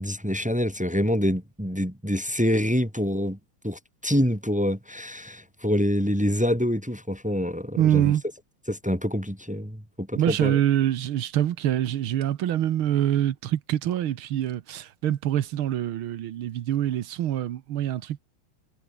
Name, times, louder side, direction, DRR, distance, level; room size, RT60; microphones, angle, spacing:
voice 1, 0.0-3.4 3.6-8.1 8.7-10.6, equal, 5° right, 2.5 m, -26 dB
voice 2, 7.8-8.2 10.2-18.2, right 11 dB, 85° right, 1.9 m, -25 dB
omnidirectional pair, 2.3 m